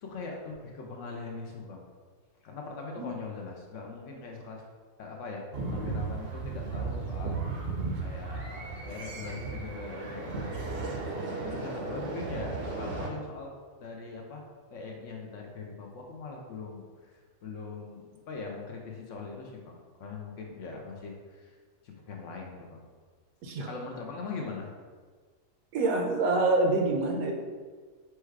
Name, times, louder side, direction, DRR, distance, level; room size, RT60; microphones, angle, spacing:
voice 1, 0.0-1.8 2.4-4.6 5.0-7.4 8.0-10.3 11.2-13.5 13.8-14.5 14.7-21.6 21.8-22.8 23.7-24.7, left 4 dB, 65° left, 0 dB, 0.9 m, -41 dB
sound 1, 5.5-13.1, right 3 dB, 55° right, 0.7 m, -35 dB
voice 2, 25.7-27.3, right 2 dB, 75° right, 2 dB, 1.1 m, -26 dB
4.7 x 2.2 x 4.6 m, 1.5 s
omnidirectional pair, 1.5 m